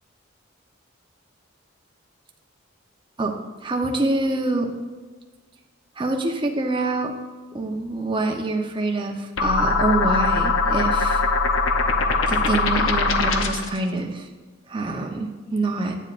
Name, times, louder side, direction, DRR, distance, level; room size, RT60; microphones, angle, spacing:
voice 1, 3.6-4.7 6.0-7.1 7.5-11.2 12.3-14.3 14.7-16.0, right 2 dB, 25° right, 1 dB, 0.7 m, -25 dB
sound 1, 9.4-13.8, left 3 dB, 80° left, 0.7 m, -21 dB
9.6 x 8.8 x 2.5 m, 1.4 s
head